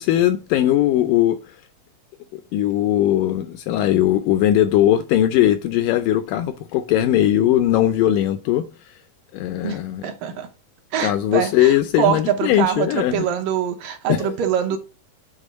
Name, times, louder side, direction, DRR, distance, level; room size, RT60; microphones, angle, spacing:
voice 1, 0.0-1.5 2.3-8.7 9.3-10.0 11.0-13.3 14.1-14.4, left 12 dB, 80° left, 1.9 m, -19 dB
voice 2, 9.6-10.5 10.9-14.8, right 9 dB, 75° right, 2.6 m, -24 dB
9.0 x 3.6 x 5.0 m
omnidirectional pair, 4.2 m